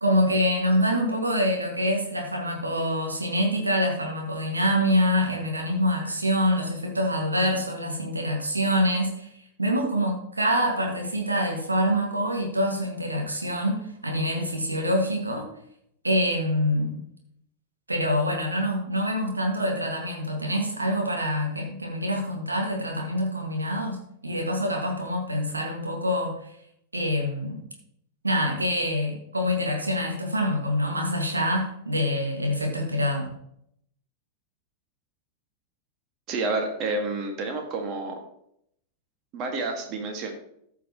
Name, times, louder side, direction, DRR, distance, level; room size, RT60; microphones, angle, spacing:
voice 1, 0.0-15.5 16.0-17.0 17.9-26.5 26.9-27.6 28.2-33.3, equal, 80° right, 1 dB, 1.9 m, -25 dB
voice 2, 36.3-38.2 39.3-40.3, right 3 dB, 40° right, 4 dB, 1.8 m, -29 dB
14.0 x 5.8 x 3.0 m, 0.72 s
figure-of-eight pair, 90°, 0 cm